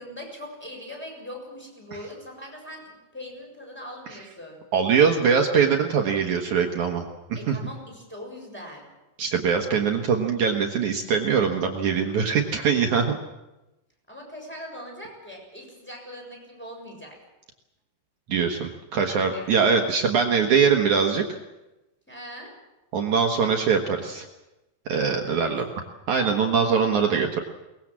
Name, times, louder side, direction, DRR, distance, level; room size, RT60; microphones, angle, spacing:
voice 1, 0.0-4.6 7.4-8.9 14.1-17.2 19.3-19.6 22.1-22.5 25.2-25.8, equal, ahead, 0 dB, 6.6 m, -41 dB
voice 2, 4.7-7.6 9.2-13.2 18.3-21.4 22.9-24.3 24.9-25.6 26.1-27.4, right 6 dB, 60° right, 3 dB, 2.1 m, -22 dB
23.0 x 20.5 x 7.5 m, 1.0 s
omnidirectional pair, 4.9 m